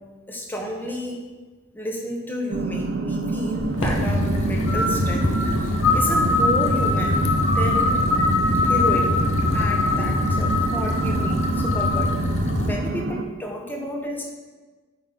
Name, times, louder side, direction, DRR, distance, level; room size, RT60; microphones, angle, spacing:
voice 1, 0.3-1.2 1.7-7.2 7.4-8.0 8.5-9.1 9.5-12.1 12.7-14.3, equal, 10° left, 0 dB, 1.0 m, -31 dB
sound 1, 2.5-13.2, right 2 dB, 55° right, 0.5 m, -28 dB
sound 2, 3.6-12.1, left 3 dB, 70° left, 1.2 m, -24 dB
sound 3, 3.8-12.7, left 1 dB, 35° left, 0.8 m, -26 dB
8.8 x 3.9 x 5.2 m, 1.3 s
head